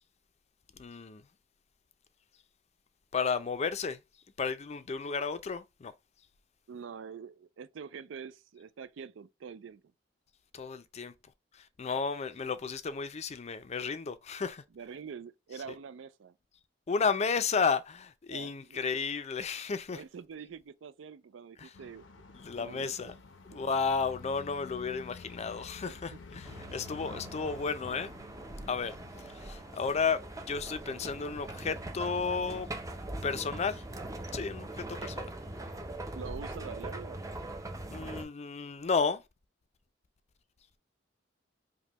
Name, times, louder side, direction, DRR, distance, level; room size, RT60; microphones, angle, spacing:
voice 1, 0.8-1.2 3.1-4.0 4.4-5.9 10.5-11.1 11.6-14.6 16.9-20.0 21.6-21.7 22.3-23.1 23.5-28.1 28.7-29.0 29.2-32.7 33.2-33.8 34.3-35.3 37.9-39.2, left 5 dB, 35° left, 0.4 m, -33 dB
voice 2, 6.7-9.8 14.7-16.3 18.3-18.8 19.9-22.1 22.6-23.2 23.5-23.7 25.9-26.2 36.1-37.2, right 6 dB, 80° right, 0.4 m, -45 dB
sound 1, 21.7-34.5, left 4 dB, 80° left, 0.7 m, -52 dB
sound 2, 26.5-38.2, right 2 dB, 20° right, 0.5 m, -42 dB
5.2 x 2.2 x 2.9 m
head